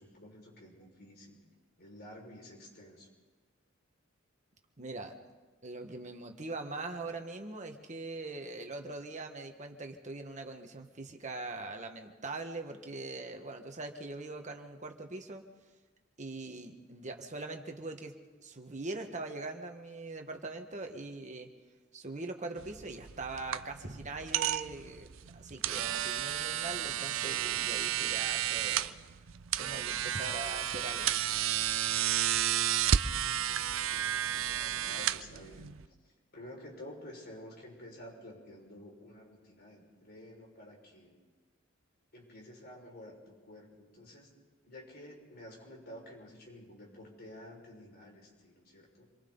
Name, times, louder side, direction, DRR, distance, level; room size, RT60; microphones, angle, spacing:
voice 1, 0.0-1.4 1.8-3.1 33.2-35.9 36.3-41.2 42.1-44.3 44.6-49.1, left 1 dB, 50° left, -1 dB, 5.8 m, -51 dB
voice 2, 4.8-15.4 16.2-18.1 18.4-21.5 21.9-25.1 25.3-29.0 29.6-31.1, right 3 dB, 35° right, 4 dB, 1.7 m, -42 dB
sound 1, 22.6-35.9, right 10 dB, 70° right, 0.6 m, -32 dB
28.0 x 23.0 x 4.1 m, 1.3 s
head